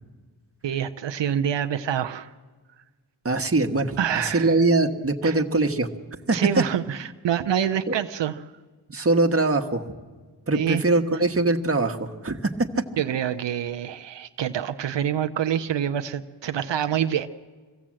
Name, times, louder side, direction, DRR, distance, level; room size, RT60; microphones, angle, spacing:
voice 1, 0.6-2.3 4.0-4.5 5.2-5.4 6.3-8.3 10.5-10.8 13.0-17.3, right 9 dB, 85° right, 8 dB, 0.7 m, -26 dB
voice 2, 3.2-5.9 6.3-6.6 7.9-8.0 8.9-9.8 10.5-12.8, right 2 dB, 30° right, 4 dB, 1.5 m, -22 dB
25.5 x 16.5 x 7.6 m, 1.4 s
cardioid pair, 60°, 42 cm